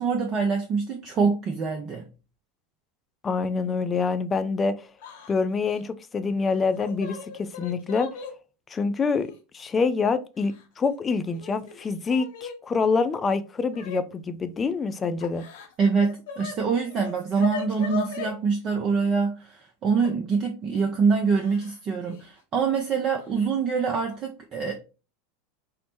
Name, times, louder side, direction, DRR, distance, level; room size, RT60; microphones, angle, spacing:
voice 1, 0.0-2.0 15.8-24.7, right 5 dB, 35° right, 0.5 m, -25 dB
voice 2, 3.2-4.9 5.3-8.1 8.7-15.4, left 4 dB, 20° left, 0.3 m, -26 dB
Yell / Crying sobbing, 5.0-5.3 5.6-5.8 6.5-8.3 9.3-9.4 10.4-10.9 11.3-12.6 13.7-14.0 15.2-16.5 16.9-18.3 20.0-20.1 21.3-21.8 22.0-22.2 23.3-23.4 23.9-24.2, left 6 dB, 60° left, 0.6 m, -38 dB
4.0 x 2.1 x 3.0 m
figure-of-eight pair, 80°, 0 cm